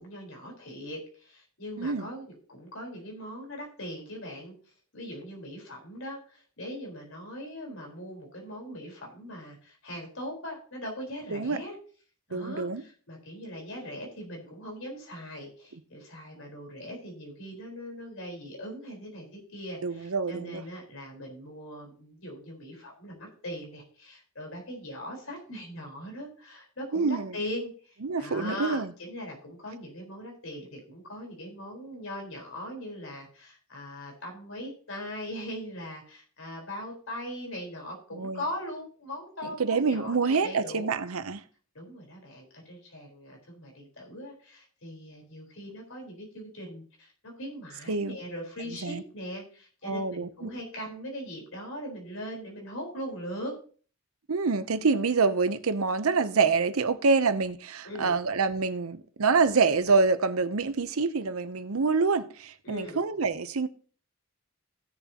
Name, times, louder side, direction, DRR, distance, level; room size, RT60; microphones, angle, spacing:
voice 1, 0.0-4.5 4.9-11.7 12.3-40.8 41.7-53.5 57.8-58.1 62.6-63.0, equal, 70° left, 4.3 m, -40 dB
voice 2, 1.8-2.1 11.3-11.6 12.3-12.8 19.8-20.6 26.9-27.3 28.0-28.9 38.1-38.4 39.6-41.4 47.9-48.2 48.7-49.0 49.8-50.5 54.3-63.7, right 4 dB, 80° right, 0.7 m, -26 dB
16.5 x 6.9 x 2.9 m
head